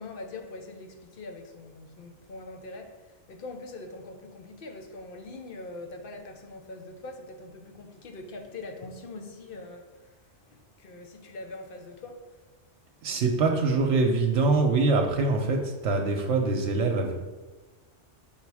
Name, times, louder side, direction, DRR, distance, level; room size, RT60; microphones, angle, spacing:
voice 1, 0.0-3.0 3.3-9.9 10.5-12.3, left 2 dB, 55° left, 0.8 m, -42 dB
voice 2, 13.0-17.1, right 3 dB, 80° right, 1.0 m, -24 dB
5.7 x 3.9 x 4.7 m
omnidirectional pair, 1.2 m